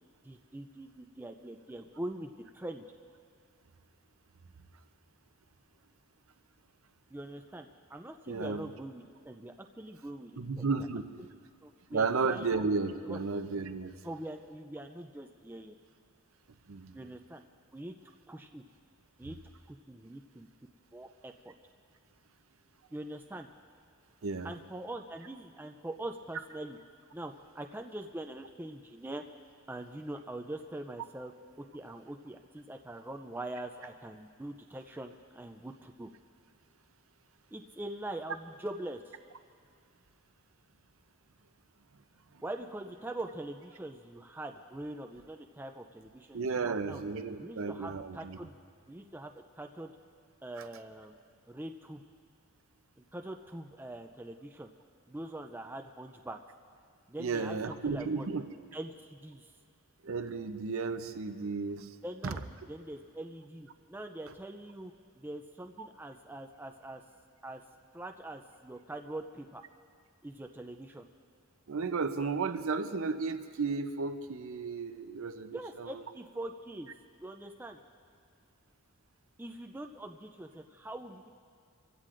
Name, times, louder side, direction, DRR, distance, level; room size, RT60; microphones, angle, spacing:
voice 1, 0.2-2.9 7.1-10.7 11.2-11.3 11.6-12.5 13.0-13.2 14.0-15.8 16.9-17.4 17.7-17.9 18.3-18.6 19.2-19.4 19.7-20.5 20.9-21.5 22.9-23.5 24.4-26.8 27.1-29.2 29.7-31.3 31.6-36.1 37.5-39.2 42.4-47.0 47.4-48.5 48.9-49.9 50.4-51.2 51.5-52.0 53.0-54.7 55.1-56.4 57.1-58.3 58.7-59.5 62.0-62.4 62.7-67.0 67.4-67.6 67.9-69.6 70.2-71.1 75.5-76.9 77.2-77.8 79.4-81.3, right 1 dB, 10° right, 4 dB, 0.4 m, -43 dB
voice 2, 8.3-8.6 10.4-11.3 11.9-13.9 16.7-17.0 24.2-24.5 46.3-48.4 57.2-58.4 60.0-62.0 62.2-62.3 65.8-65.9 71.7-76.0, right 4 dB, 65° right, 9 dB, 0.6 m, -33 dB
24.5 x 16.0 x 2.5 m, 2.1 s
head